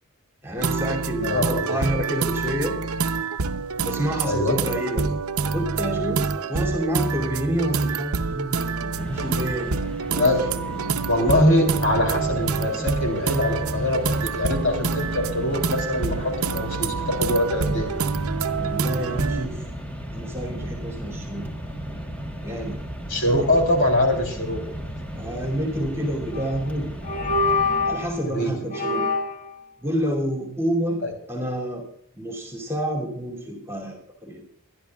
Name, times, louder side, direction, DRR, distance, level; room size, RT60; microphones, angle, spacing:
voice 1, 0.4-2.8 3.8-5.1 5.5-6.2 6.5-9.8 10.1-10.8 18.5-19.6 20.1-21.5 22.4-22.8 23.4-23.5 25.1-26.9 27.8-29.0 29.8-31.0 31.3-31.8 32.2-34.4, equal, 10° right, 0 dB, 2.8 m, -28 dB
sound 1, 0.6-19.4, right 4 dB, 85° right, 0.7 m, -27 dB
voice 2, 1.2-1.8 4.3-4.6 10.2-10.4 11.1-17.9 23.1-24.6 28.2-28.5 31.0-31.1, left 1 dB, 60° left, 3 dB, 3.5 m, -23 dB
Mechanisms, 9.0-28.4, equal, 5° left, 1.3 m, -35 dB
sound 2, 26.3-26.6 27.0-28.1 28.7-29.5, left 3 dB, 40° left, 1.6 m, -24 dB
23.5 x 11.0 x 2.4 m, 0.70 s
head